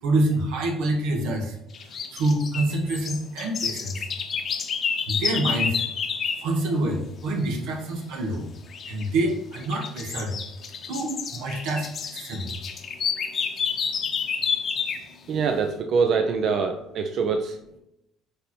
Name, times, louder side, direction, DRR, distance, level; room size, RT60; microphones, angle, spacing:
voice 1, 0.0-1.6 1.8-4.1 5.1-5.8 6.4-8.5 8.9-10.3 10.9-12.6, right 1 dB, 90° right, 2 dB, 1.6 m, -26 dB
sound 1, 1.7-6.5 8.7-9.1 9.5-15.1, left 6 dB, 40° left, 0.7 m, -29 dB
voice 2, 15.3-17.6, right 5 dB, 50° right, 5 dB, 0.6 m, -24 dB
9.0 x 3.5 x 4.5 m, 0.81 s
cardioid pair, 130°, 0 cm